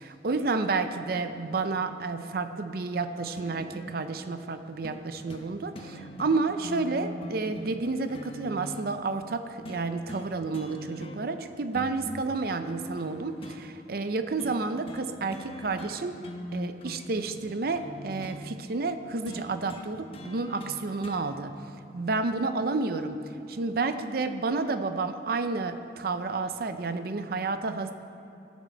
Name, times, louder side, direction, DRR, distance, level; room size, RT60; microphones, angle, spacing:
voice 1, 0.0-16.2 16.5-21.5 21.9-23.2 23.5-27.9, right 3 dB, 55° right, 9 dB, 0.6 m, -30 dB
sound 1, 3.4-4.0 4.8-5.0 5.3-5.5 5.8-8.8 9.7-10.3 10.5-11.4 11.7-13.6 14.4-14.6 14.9-15.1 15.3-18.4 19.3-21.2 22.3-22.4, equal, 35° left, 0.9 m, -42 dB
15.5 x 7.3 x 4.5 m, 3.0 s
head